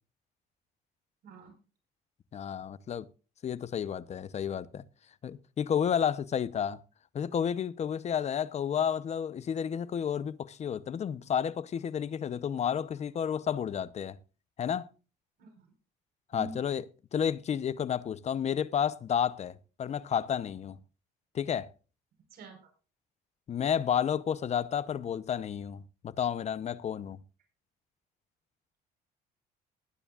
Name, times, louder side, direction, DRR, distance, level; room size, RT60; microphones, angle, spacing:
voice 1, 1.2-1.5 15.4-15.7 16.3-16.6 22.3-22.6, right 2 dB, 65° right, 4.8 m, -45 dB
voice 2, 2.3-3.1 3.4-4.8 5.2-6.8 7.1-14.2 14.6-14.8 16.3-16.9 17.1-20.8 21.3-21.7 23.5-27.2, left 8 dB, 40° left, 0.8 m, -31 dB
19.5 x 9.9 x 2.4 m
cardioid pair, 110°, 17 cm